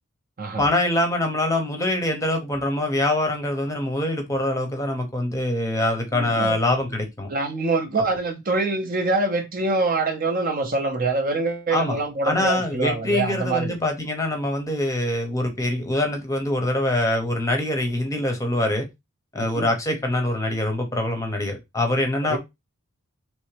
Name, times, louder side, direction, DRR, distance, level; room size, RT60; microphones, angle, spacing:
voice 1, 0.6-7.3 11.7-12.0 12.2-18.9 19.3-22.4, left 1 dB, 15° left, 0.7 m, -24 dB
voice 2, 6.1-6.6 7.3-13.8 19.4-19.7 22.3-22.4, right 3 dB, 40° right, 0.6 m, -25 dB
3.4 x 3.1 x 3.2 m
head